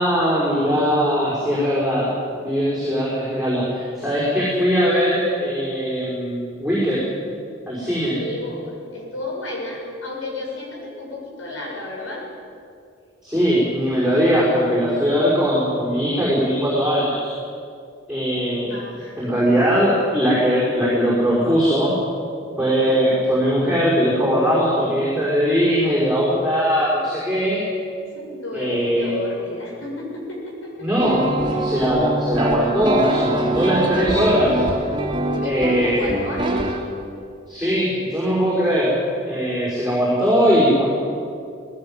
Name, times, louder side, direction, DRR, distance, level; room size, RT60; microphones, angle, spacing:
voice 1, 0.0-2.1 2.4-7.0 7.7-8.2 13.2-17.3 18.1-18.8 19.2-22.0 22.6-27.6 28.5-29.1 30.8-31.2 31.6-34.6 35.4-36.0 37.5-38.9 39.3-40.8, equal, 5° right, -7 dB, 5.6 m, -20 dB
voice 2, 8.1-12.2 18.7-19.8 28.1-30.9 31.5-31.7 33.2-33.5 33.9-34.2 35.3-36.8, left 2 dB, 80° left, -2 dB, 7.1 m, -32 dB
sound 1, 31.0-36.8, right 2 dB, 25° right, 3.1 m, -24 dB
19.5 x 17.5 x 9.0 m, 2.4 s
head